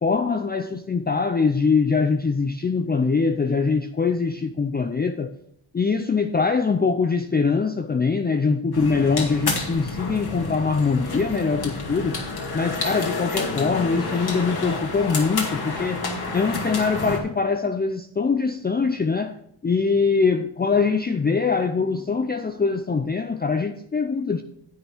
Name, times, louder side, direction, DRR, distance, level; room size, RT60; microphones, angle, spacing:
voice 1, 0.0-5.3 5.7-12.2 12.5-16.0 16.3-19.3 19.6-24.4, left 4 dB, 20° left, 0.5 m, -23 dB
sound 1, 8.7-17.2, left 3 dB, 55° left, 2.2 m, -29 dB
10.0 x 8.7 x 3.5 m
wide cardioid pair, 120°, 45 cm